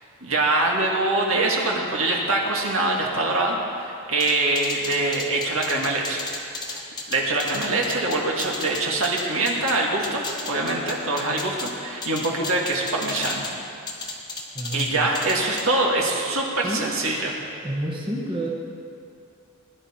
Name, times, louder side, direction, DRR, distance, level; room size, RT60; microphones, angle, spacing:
voice 1, 0.2-6.2 6.7-6.8 7.1-13.5 14.7-17.4, right 2 dB, 65° right, -1 dB, 2.0 m, -24 dB
sound 1, 4.2-9.8 10.0-11.7 12.0-13.5 13.9-14.9 15.1-15.6, left 3 dB, 20° left, 1.4 m, -33 dB
voice 2, 14.5-15.1 16.6-16.9 17.6-18.6, right 1 dB, 20° right, -4 dB, 1.4 m, -29 dB
20.0 x 11.0 x 4.4 m, 2.6 s
head